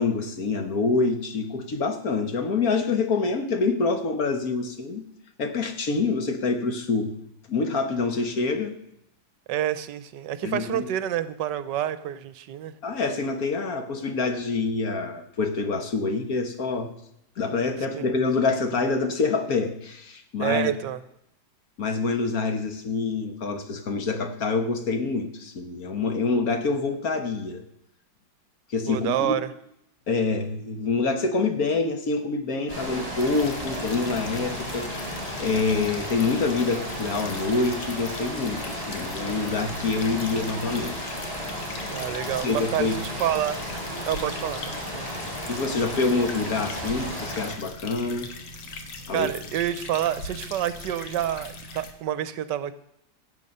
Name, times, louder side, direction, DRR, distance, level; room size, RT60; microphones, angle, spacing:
voice 1, 0.0-5.0 5.4-7.1 7.5-8.7 10.4-10.9 12.8-16.9 17.4-20.7 21.8-27.6 28.7-29.3 30.1-41.2 42.4-43.0 45.5-48.3 49.1-49.3, left 4 dB, 55° left, 6 dB, 1.5 m, -26 dB
voice 2, 9.5-12.7 17.9-18.2 20.4-21.0 28.9-29.5 41.9-43.6 44.1-45.1 49.1-52.7, right 11 dB, 75° right, 14 dB, 1.2 m, -28 dB
sound 1, 32.7-47.5, equal, 20° left, 5.5 m, -34 dB
sound 2, 33.2-51.9, left 2 dB, 80° left, 2.1 m, -40 dB
16.5 x 7.7 x 5.4 m, 0.77 s
omnidirectional pair, 2.0 m